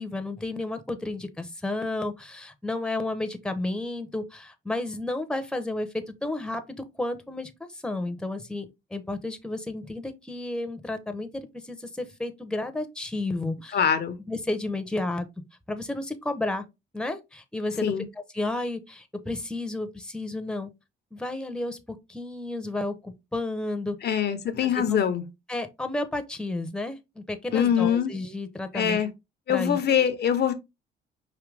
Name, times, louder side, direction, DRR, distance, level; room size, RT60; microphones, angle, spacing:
voice 1, 0.0-13.8 14.3-15.3 15.7-16.6 16.9-17.9 18.3-20.7 21.1-21.8 22.1-24.0 24.6-25.0 25.5-29.0 29.5-30.1, left 2 dB, 5° left, 0.8 m, -32 dB
voice 2, 13.7-14.2 17.8-18.1 24.0-25.2 27.5-28.1 28.7-29.1 29.5-30.5, left 8 dB, 55° left, 0.8 m, -23 dB
5.0 x 2.8 x 3.3 m
cardioid pair, 90°, 20 cm